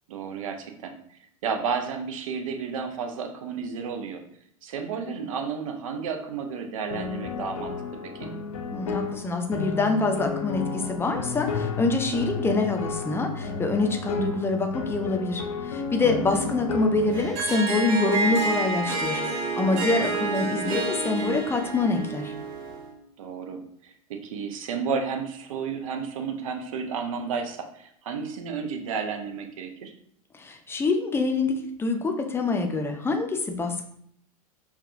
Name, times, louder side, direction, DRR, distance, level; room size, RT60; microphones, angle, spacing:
voice 1, 0.1-4.2 4.6-8.3 16.2-16.6 23.2-29.9, right 6 dB, 65° right, 5 dB, 0.6 m, -32 dB
sound 1, 6.9-17.3, left 5 dB, 70° left, 0.6 m, -32 dB
voice 2, 8.7-22.3 30.3-33.9, left 3 dB, 15° left, 4 dB, 0.5 m, -26 dB
Harp, 17.1-22.9, right 3 dB, 50° right, 1.0 m, -29 dB
4.6 x 2.3 x 2.5 m, 0.68 s
figure-of-eight pair, 85°, 18 cm